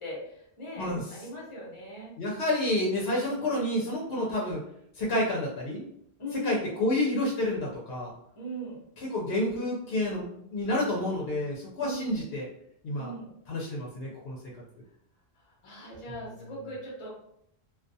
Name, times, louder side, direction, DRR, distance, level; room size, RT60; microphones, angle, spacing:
voice 1, 0.0-2.1 3.2-3.5 6.2-6.6 8.4-8.8 11.8-12.1 13.0-13.3 15.4-17.1, equal, 30° left, -4 dB, 0.8 m, -39 dB
voice 2, 0.8-1.1 2.2-4.6 4.9-5.8 6.3-8.1 9.0-12.5 12.8-13.1 13.5-14.4 16.1-16.5, left 1 dB, 70° left, -3 dB, 0.8 m, -29 dB
2.3 x 2.3 x 2.6 m, 0.73 s
omnidirectional pair, 1.1 m